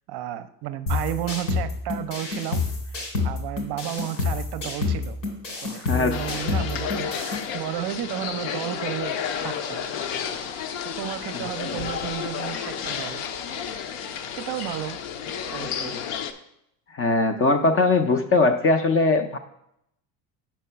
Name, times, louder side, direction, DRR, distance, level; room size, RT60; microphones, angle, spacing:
voice 1, 0.1-5.2 5.6-9.9 10.8-13.2 14.4-15.0 15.5-16.0, right 12 dB, 55° right, 11 dB, 0.6 m, -33 dB
sound 1, 0.9-7.4, left 4 dB, 85° left, 2.7 m, -28 dB
voice 2, 5.9-6.4 11.7-11.8 16.9-19.4, left 3 dB, 30° left, 7 dB, 0.4 m, -21 dB
sound 2, 6.1-16.3, left 7 dB, 65° left, 0.8 m, -31 dB
5.2 x 4.5 x 5.6 m, 0.78 s
supercardioid pair, 110°, 49 cm